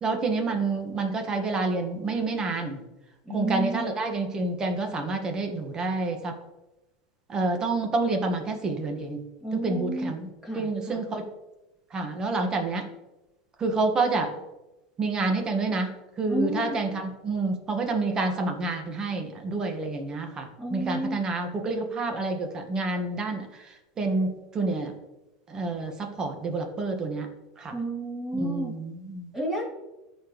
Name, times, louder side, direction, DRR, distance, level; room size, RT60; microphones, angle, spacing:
voice 1, 0.0-2.8 3.3-6.3 7.3-9.2 9.6-10.3 10.5-11.2 11.9-12.9 13.6-14.3 15.0-24.9 25.5-27.3 27.6-27.7 28.3-29.3, right 3 dB, 30° right, 4 dB, 1.6 m, -28 dB
voice 2, 3.2-3.9 9.4-10.1 10.4-11.0 16.3-16.8 20.6-21.2 27.7-28.7 29.3-29.6, right 1 dB, 15° right, -4 dB, 3.1 m, -31 dB
13.5 x 4.6 x 3.2 m, 0.99 s
hypercardioid pair, 95°, 2 cm